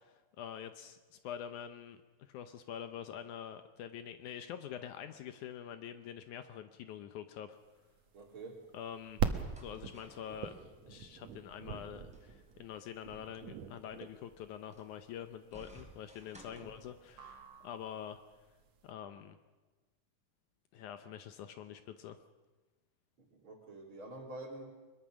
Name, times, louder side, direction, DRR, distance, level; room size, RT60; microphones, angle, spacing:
voice 1, 0.0-7.6 8.7-9.2 9.6-10.5 10.9-18.2 18.8-19.4 20.7-22.2, left 9 dB, 75° left, 9 dB, 2.1 m, -46 dB
sound 1, 7.7-18.8, right 7 dB, 60° right, 2.2 m, -42 dB
voice 2, 8.1-8.6 16.5-16.7 23.2-24.6, right 2 dB, 40° right, 0 dB, 3.7 m, -47 dB
sound 2, 9.4-17.4, right 1 dB, ahead, 3.1 m, -61 dB
22.5 x 22.0 x 6.3 m, 1.2 s
omnidirectional pair, 3.8 m